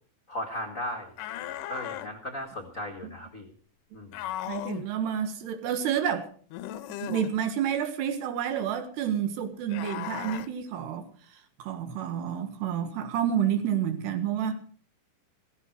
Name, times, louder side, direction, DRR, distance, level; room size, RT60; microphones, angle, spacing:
voice 1, 0.3-1.1 1.7-3.5 3.9-4.2, equal, 55° left, 0.8 m, -36 dB
sound 1, 1.2-2.1 4.1-4.9 6.5-7.3 9.7-10.5, left 13 dB, 75° left, 2.0 m, -36 dB
voice 2, 4.5-6.3 7.0-11.1 11.6-14.7, right 9 dB, 85° right, 3.7 m, -29 dB
15.5 x 15.5 x 4.7 m
omnidirectional pair, 4.7 m